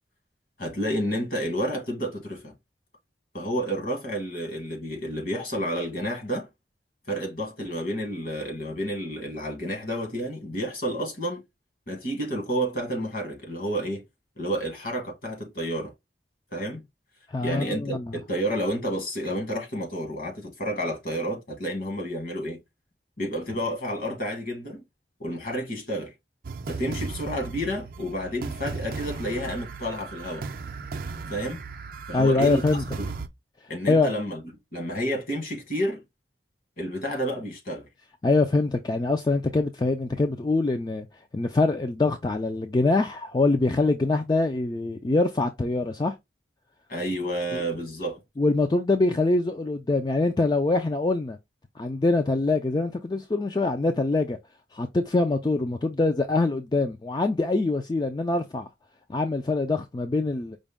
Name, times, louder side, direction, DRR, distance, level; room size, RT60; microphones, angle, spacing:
voice 1, 0.6-2.5 3.3-6.5 7.1-11.4 11.9-14.0 14.4-15.9 16.5-16.8 17.4-22.6 23.2-24.8 25.2-26.1 26.7-30.5 31.3-31.6 32.1-32.6 33.0-33.1 33.7-34.4 34.7-36.0 36.8-37.9 46.9-48.2, equal, 55° left, 1.5 m, -30 dB
voice 2, 17.3-18.2 32.1-32.8 33.9-34.1 38.2-41.1 41.3-46.2 47.5-47.6 48.4-51.4 51.8-54.4 54.7-58.7 59.1-60.6, left 3 dB, 25° left, 0.3 m, -24 dB
sound 1, 26.4-33.3, right 4 dB, 55° right, 0.5 m, -36 dB
5.1 x 2.2 x 3.5 m
head